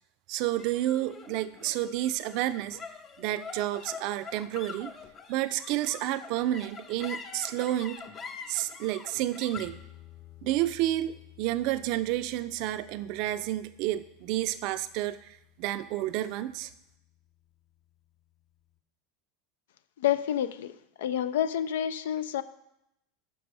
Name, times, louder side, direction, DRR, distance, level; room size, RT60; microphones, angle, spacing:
voice 1, 0.3-2.8 3.2-4.9 5.3-8.0 8.5-9.8 10.4-15.2 15.6-16.7, right 14 dB, 60° right, 13 dB, 0.4 m, -30 dB
sound 1, 0.6-17.1, left 5 dB, 30° left, 0.7 m, -47 dB
voice 2, 20.0-22.4, left 10 dB, 80° left, 14 dB, 0.4 m, -29 dB
6.1 x 6.0 x 4.8 m, 0.82 s
hypercardioid pair, 100°, 0 cm